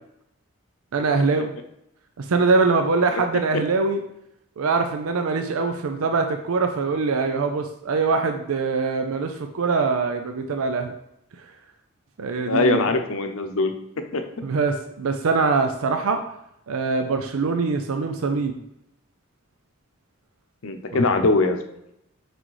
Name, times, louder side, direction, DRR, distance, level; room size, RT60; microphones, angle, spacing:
voice 1, 0.9-1.5 2.2-4.0 4.6-10.9 12.2-12.9 14.4-16.2 16.7-18.6 20.9-21.0, right 4 dB, 85° right, 6 dB, 0.5 m, -23 dB
voice 2, 12.4-13.7 14.1-14.2 20.6-21.6, left 3 dB, 75° left, 6 dB, 0.7 m, -21 dB
6.0 x 5.0 x 3.1 m, 0.81 s
head